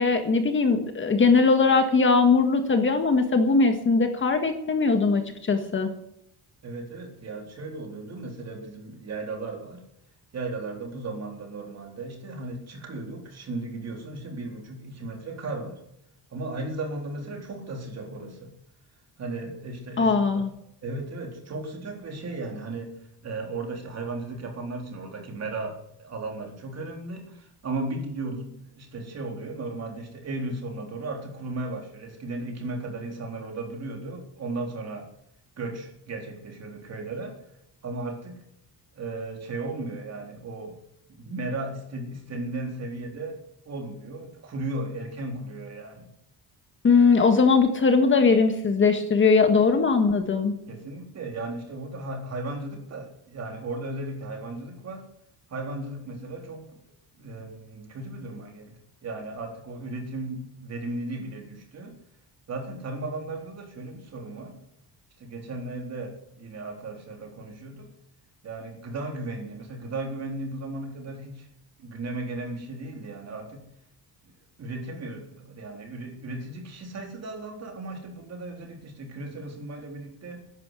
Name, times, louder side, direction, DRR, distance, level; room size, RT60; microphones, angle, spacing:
voice 1, 0.0-5.9 20.0-20.5 46.8-50.5, left 4 dB, 30° left, 6 dB, 1.6 m, -20 dB
voice 2, 6.6-9.8 10.3-15.8 16.3-18.5 19.2-20.4 20.8-22.9 23.2-35.1 35.6-37.4 37.8-38.4 39.0-40.7 41.1-43.4 43.7-46.1 50.7-55.0 55.5-56.8 57.2-62.0 62.5-64.6 65.2-67.9 68.4-71.5 71.8-73.7 74.6-80.4, right 2 dB, 40° right, 2 dB, 3.9 m, -35 dB
14.5 x 11.0 x 8.3 m, 0.76 s
cardioid pair, 175°, 40 cm